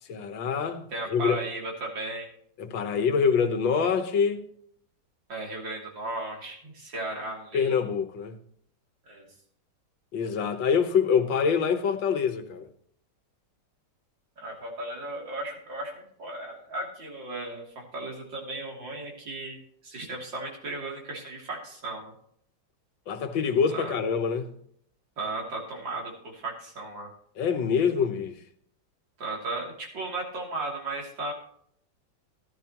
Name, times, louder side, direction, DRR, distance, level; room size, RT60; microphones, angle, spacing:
voice 1, 0.1-1.4 2.6-4.4 7.5-8.4 10.1-12.7 23.1-24.5 27.4-28.4, left 6 dB, 85° left, 1.8 m, -25 dB
voice 2, 0.9-2.3 5.3-7.8 9.1-9.2 14.4-19.6 19.8-22.0 23.7-24.0 25.2-27.1 29.2-31.3, right 2 dB, 80° right, 3.6 m, -35 dB
14.5 x 12.0 x 3.0 m
omnidirectional pair, 2.0 m